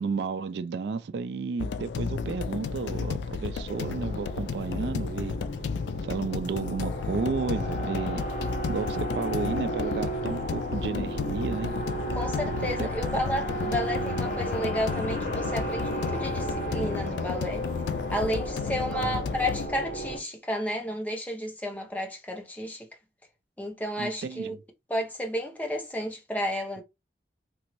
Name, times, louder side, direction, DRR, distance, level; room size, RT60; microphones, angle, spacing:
voice 1, 0.0-5.3 6.1-8.2 8.7-11.7 12.8-12.9 18.9-19.2 24.0-24.6, right 5 dB, 75° right, 0.3 m, -32 dB
sound 1, 1.6-19.7, left 5 dB, 85° left, 0.3 m, -33 dB
sound 2, 3.7-20.2, right 1 dB, 45° left, 1.0 m, -34 dB
voice 2, 12.1-17.6 18.1-22.9 23.6-24.5 24.9-26.8, equal, 10° left, 0.6 m, -32 dB
3.0 x 2.6 x 3.0 m
head